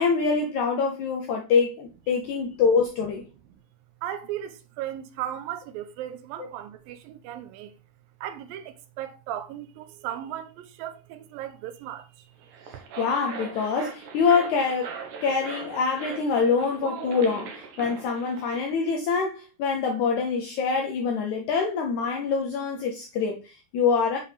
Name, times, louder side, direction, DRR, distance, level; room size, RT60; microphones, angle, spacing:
voice 1, 0.0-3.2 13.0-14.9 15.2-17.5 17.8-24.2, left 5 dB, 80° left, 1.7 m, -25 dB
voice 2, 4.0-7.7 8.2-12.1, right 11 dB, 80° right, 2.4 m, -36 dB
sound 1, 12.4-18.6, right 5 dB, 65° right, 2.5 m, -39 dB
7.7 x 5.2 x 3.4 m
omnidirectional pair, 4.3 m